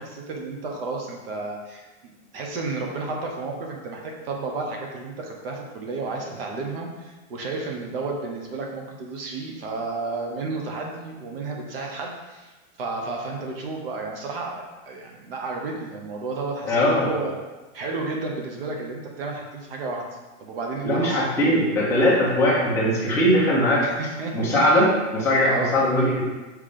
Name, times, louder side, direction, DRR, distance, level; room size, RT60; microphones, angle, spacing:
voice 1, 0.0-12.5 12.8-17.3 17.7-20.0 20.4-21.3 23.8-24.5 25.4-25.7, right 3 dB, 50° right, 1 dB, 1.1 m, -32 dB
voice 2, 16.6-17.2 20.8-23.8 24.3-26.2, equal, 5° left, -8 dB, 0.9 m, -20 dB
5.7 x 3.3 x 5.0 m, 1.2 s
supercardioid pair, 175°, 38 cm